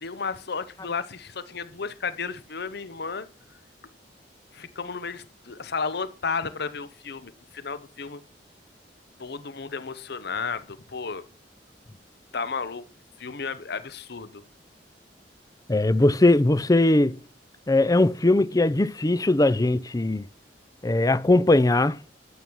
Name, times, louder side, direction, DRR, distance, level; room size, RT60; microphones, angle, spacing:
voice 1, 0.0-3.3 4.5-8.2 9.2-11.2 12.3-12.9 13.2-14.4, left 5 dB, 65° left, 1.0 m, -33 dB
voice 2, 15.7-17.2 17.7-20.3 20.8-22.0, left 2 dB, 20° left, 0.5 m, -20 dB
12.5 x 8.9 x 6.2 m
head